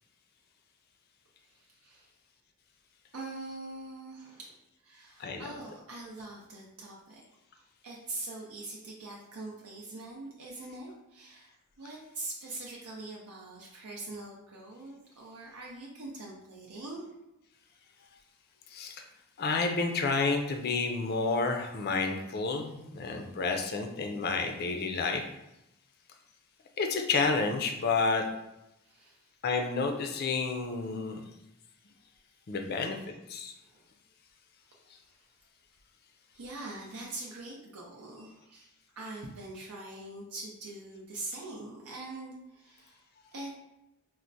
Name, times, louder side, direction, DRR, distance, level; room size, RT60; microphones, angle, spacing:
voice 1, 1.4-2.1 3.1-4.6 4.8-7.3 7.5-17.0 28.8-29.2 33.6-33.9 36.3-38.7 39.0-43.0 43.3-43.5, right 2 dB, 80° right, -3 dB, 0.6 m, -43 dB
voice 2, 18.7-19.0 19.4-25.2 26.8-28.2 29.4-31.2 32.5-33.0 33.3-33.5, left 4 dB, 45° left, 4 dB, 0.4 m, -30 dB
4.4 x 2.0 x 2.6 m, 0.89 s
head